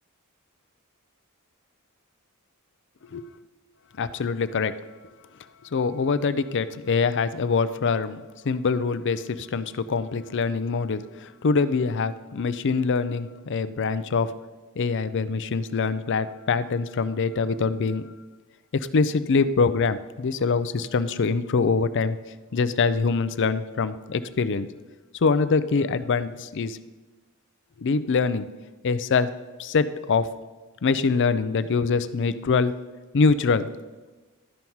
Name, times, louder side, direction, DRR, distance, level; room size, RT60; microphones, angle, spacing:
voice 1, 4.0-4.7 5.7-14.3 14.8-18.0 18.7-22.2 22.5-24.7 25.2-26.8 27.8-28.5 28.8-29.3 29.6-30.3 30.8-32.7 33.1-33.7, left 4 dB, 55° left, 13 dB, 0.5 m, -24 dB
12.5 x 5.5 x 4.6 m, 1.2 s
head